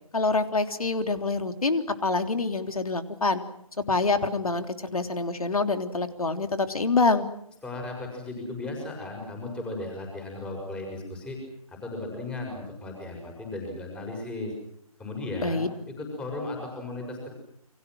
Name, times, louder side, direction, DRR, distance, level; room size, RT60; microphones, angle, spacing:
voice 1, 0.1-3.4 3.9-7.3 15.4-15.7, left 3 dB, 65° left, 8 dB, 3.5 m, -26 dB
voice 2, 7.6-11.4 11.7-14.5 15.0-15.6 16.0-17.3, left 2 dB, 5° left, 1 dB, 6.2 m, -36 dB
29.5 x 26.0 x 6.3 m, 0.71 s
figure-of-eight pair, 160°, 19 cm